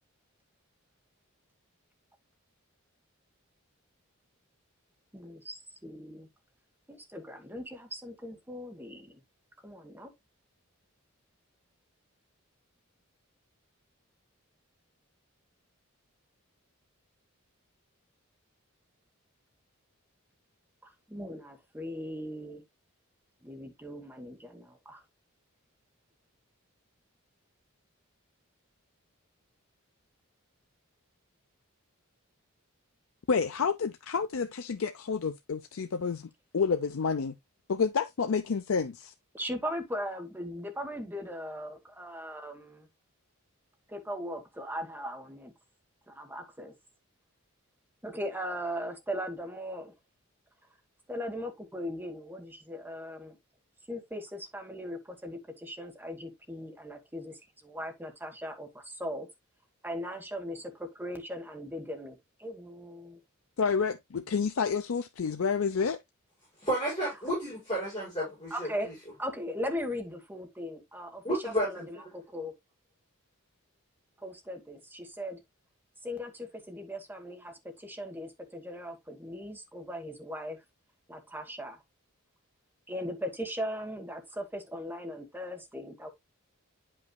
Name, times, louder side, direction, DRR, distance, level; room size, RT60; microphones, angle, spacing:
voice 1, 5.1-6.3 6.9-9.2 9.6-10.1 20.8-22.6 23.4-25.0 39.3-42.9 43.9-45.5 46.1-46.7 48.0-49.9 51.1-53.4 53.9-57.3 57.6-59.3 59.8-63.2 68.5-68.9 69.2-72.5 74.2-75.4 76.0-80.6 81.1-81.8 82.9-86.1, equal, 10° right, 1.3 m, -39 dB
voice 2, 33.3-37.4 37.7-39.1 63.6-66.0, left 5 dB, 65° left, 0.5 m, -29 dB
voice 3, 66.6-68.7 71.2-71.8, right 1 dB, 20° left, 5.5 m, -31 dB
9.3 x 5.5 x 2.2 m
head